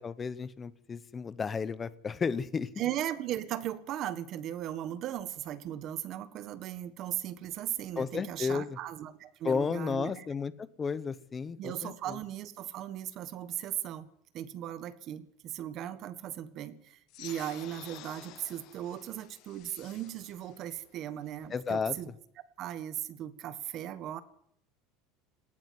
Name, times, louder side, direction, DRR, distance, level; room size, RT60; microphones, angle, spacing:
voice 1, 0.0-2.7 8.0-8.8 9.4-12.2 21.5-22.0, left 5 dB, 15° left, 16 dB, 0.9 m, -33 dB
voice 2, 2.8-10.3 11.6-14.1 14.3-22.1 22.6-24.2, right 11 dB, 40° right, 14 dB, 1.5 m, -37 dB
sound 1, 17.1-22.1, left 16 dB, 45° left, 0.9 m, -51 dB
19.0 x 14.5 x 9.6 m, 0.70 s
cardioid pair, 160°, 0 cm